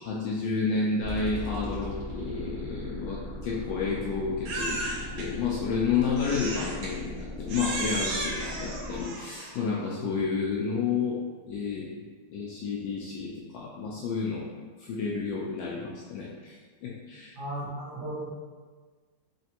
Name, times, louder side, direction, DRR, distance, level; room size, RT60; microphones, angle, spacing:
voice 1, 0.0-4.8 5.2-11.2 11.5-11.9 12.3-14.5 14.8-17.3, left 5 dB, 75° left, -4 dB, 1.1 m, -30 dB
sound 1, 1.0-9.0, left 1 dB, 35° left, 0.4 m, -38 dB
Crying sobbing, 4.5-5.3 6.2-6.9 7.5-9.6, right 2 dB, 80° right, 1.6 m, -34 dB
voice 2, 17.4-18.3, right 1 dB, 60° right, -7 dB, 1.1 m, -35 dB
4.3 x 3.1 x 2.8 m, 1.5 s
omnidirectional pair, 2.4 m